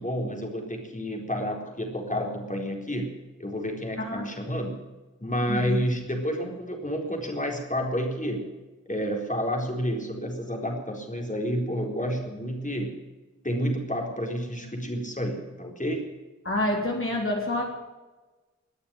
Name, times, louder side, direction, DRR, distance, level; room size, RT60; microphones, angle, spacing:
voice 1, 0.0-3.1 3.4-4.8 5.2-8.4 8.9-12.9 13.4-16.1, equal, 25° left, 2 dB, 4.2 m, -30 dB
voice 2, 16.4-17.6, left 1 dB, 45° left, -1 dB, 3.9 m, -27 dB
21.0 x 7.0 x 9.0 m, 1.2 s
wide cardioid pair, 45°, 30 cm